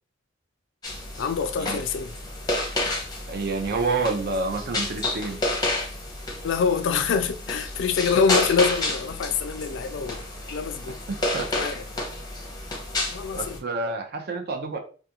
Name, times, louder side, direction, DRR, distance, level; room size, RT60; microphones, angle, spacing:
sound 1, 0.8-13.6, left 2 dB, 20° left, 0.6 m, -30 dB
voice 1, 1.2-2.1 6.4-10.2 10.5-11.0 11.5-11.9 13.1-13.6, left 5 dB, 70° left, 0.3 m, -25 dB
voice 2, 3.3-5.4 11.1-11.5 13.4-14.8, right 3 dB, 55° right, 0.5 m, -28 dB
2.4 x 2.2 x 2.8 m
head